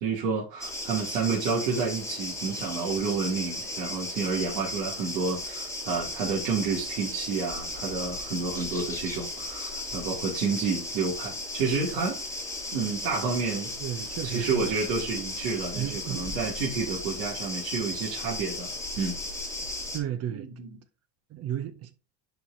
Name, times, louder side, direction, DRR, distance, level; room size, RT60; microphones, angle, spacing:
voice 1, 0.0-12.2 12.7-13.7 14.2-18.7 19.0-19.2 20.3-20.8, right 5 dB, 80° right, 2.4 m, -30 dB
sound 1, 0.6-20.0, left 2 dB, 5° left, 1.3 m, -35 dB
voice 2, 13.8-14.7 15.8-16.3 19.9-20.5 21.3-21.9, right 10 dB, 35° right, 0.4 m, -33 dB
10.5 x 4.2 x 2.6 m
cardioid pair, 135°, 48 cm